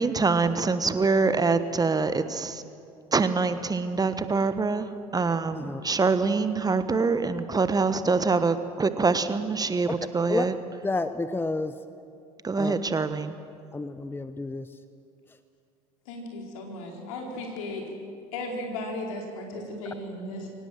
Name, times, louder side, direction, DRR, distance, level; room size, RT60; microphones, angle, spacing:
voice 1, 0.0-2.6 3.1-10.6 12.4-13.3, right 4 dB, 20° right, 11 dB, 1.3 m, -25 dB
voice 2, 10.8-11.7 12.6-12.7 13.7-14.7, left 3 dB, 10° left, 12 dB, 0.9 m, -30 dB
voice 3, 16.1-17.8 18.3-20.5, left 2 dB, 70° left, 1 dB, 4.6 m, -35 dB
23.5 x 18.5 x 7.6 m, 2.5 s
figure-of-eight pair, 65°, 18 cm